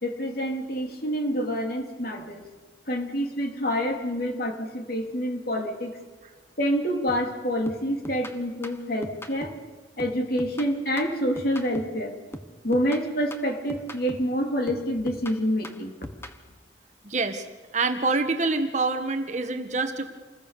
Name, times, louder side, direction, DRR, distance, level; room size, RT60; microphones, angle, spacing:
voice 1, 0.0-2.4 2.9-5.9 6.6-9.5 10.0-12.1 12.6-15.9, equal, 50° left, 3 dB, 3.3 m, -27 dB
sound 1, 7.1-7.3 7.7-9.7 10.0-12.0 12.3-14.4 14.7-16.4, left 1 dB, 15° left, 1.3 m, -41 dB
voice 2, 17.0-17.5 17.7-20.0, right 3 dB, 35° right, 7 dB, 1.7 m, -26 dB
28.0 x 20.5 x 6.9 m, 1.3 s
head